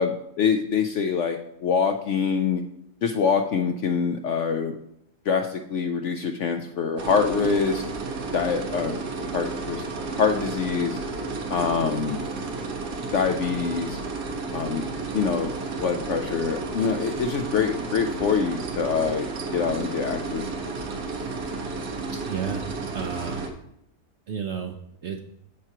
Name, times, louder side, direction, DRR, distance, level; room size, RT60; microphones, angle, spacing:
voice 1, 0.0-2.6 3.0-4.8 5.3-7.8 8.3-9.0 9.3-9.8 10.2-11.0 11.5-12.2 13.1-14.0 14.5-14.9 15.1-15.5 15.8-20.5, left 6 dB, 65° left, 6 dB, 0.7 m, -25 dB
sound 1, 7.0-23.5, right 3 dB, 80° right, 1.6 m, -32 dB
voice 2, 22.1-22.7 22.9-23.4 24.3-25.2, right 7 dB, 65° right, 5 dB, 0.7 m, -32 dB
13.5 x 4.6 x 2.9 m, 0.78 s
omnidirectional pair, 1.7 m